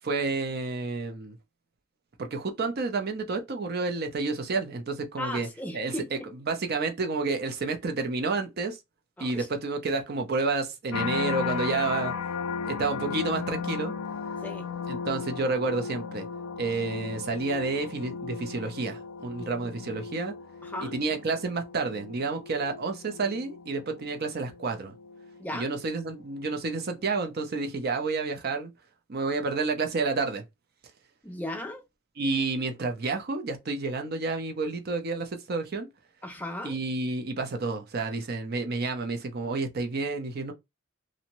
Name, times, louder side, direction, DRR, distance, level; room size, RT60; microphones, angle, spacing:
voice 1, 0.0-1.4 2.2-5.5 5.7-8.8 9.2-12.2 12.6-13.9 14.9-16.3 16.6-20.4 20.8-24.9 25.5-28.7 29.1-30.4 32.2-35.9 36.6-40.5, right 3 dB, 50° right, 0.5 m, -30 dB
voice 2, 5.2-6.1 9.2-9.5 14.4-14.7 19.4-19.7 20.6-20.9 25.4-25.7 31.2-31.8 36.2-36.8, left 1 dB, 10° left, 0.4 m, -36 dB
sound 1, 10.9-26.1 26.6-27.1, left 6 dB, 85° left, 0.4 m, -36 dB
2.6 x 2.1 x 2.9 m
head